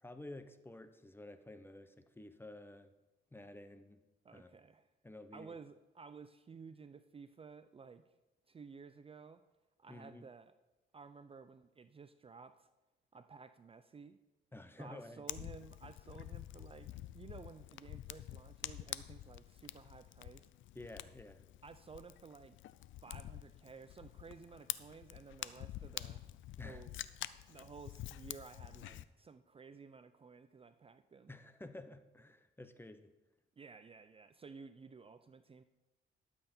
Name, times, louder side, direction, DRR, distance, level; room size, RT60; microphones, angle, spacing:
voice 1, 0.0-2.9 3.3-4.0 4.3-4.6 5.0-5.6 9.9-10.3 14.5-15.2 20.7-21.4 26.6-26.9 31.3-33.1, left 2 dB, 10° left, 10 dB, 0.8 m, -51 dB
voice 2, 4.2-4.9 5.3-8.0 8.5-9.4 9.8-10.5 10.9-12.7 13.1-14.2 14.8-16.9 17.1-20.5 21.6-22.6 23.0-26.2 26.6-27.0 27.5-31.3 33.6-35.6, right 5 dB, 30° right, 10 dB, 0.5 m, -54 dB
Fire, 15.3-29.0, left 14 dB, 75° left, 0.5 m, -47 dB
12.5 x 7.7 x 4.3 m, 1.0 s
cardioid pair, 90°, 20 cm